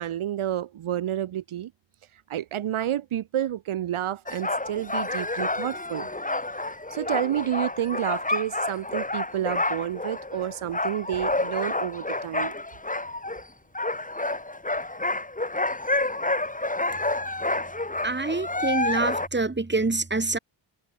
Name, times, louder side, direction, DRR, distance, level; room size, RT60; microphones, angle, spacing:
voice 1, 0.0-1.7 2.3-6.1 6.9-12.5, right 11 dB, 85° right, 1.3 m, -30 dB
sound 1, 4.3-13.4 13.7-19.3, left 2 dB, 15° left, 4.0 m, -29 dB
voice 2, 18.0-20.4, right 3 dB, 20° right, 3.5 m, -26 dB
wide cardioid pair, 95°, 49 cm